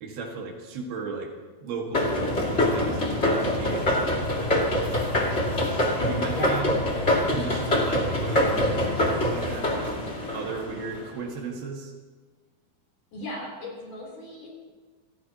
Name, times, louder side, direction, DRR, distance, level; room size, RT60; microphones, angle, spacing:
voice 1, 0.0-1.3 1.6-4.2 6.0-6.8 7.3-9.9 10.3-11.9, right 4 dB, 80° right, 0 dB, 3.8 m, -35 dB
sound 1, 1.9-11.0, left 1 dB, 20° left, 2.2 m, -25 dB
voice 2, 6.3-6.9 10.7-10.9 13.1-14.7, left 1 dB, 55° left, -3 dB, 5.0 m, -38 dB
28.0 x 15.5 x 3.0 m, 1.3 s
omnidirectional pair, 4.3 m